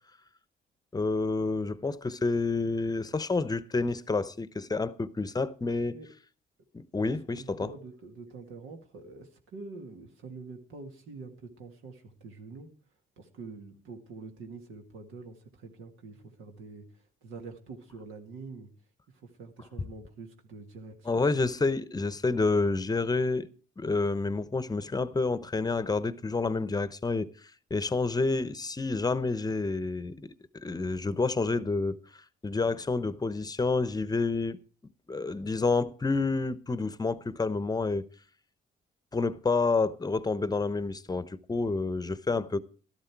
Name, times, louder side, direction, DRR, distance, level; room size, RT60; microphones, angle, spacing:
voice 1, 0.9-5.9 6.7-7.7 21.1-23.5 23.8-27.3 27.7-30.3 30.6-32.0 32.4-34.6 35.1-38.0 39.1-42.6, left 3 dB, 20° left, 0.8 m, -29 dB
voice 2, 7.4-12.7 13.2-18.7 19.1-21.5, right 4 dB, 85° right, 1.9 m, -46 dB
13.0 x 12.0 x 4.6 m
cardioid pair, 90°, 20 cm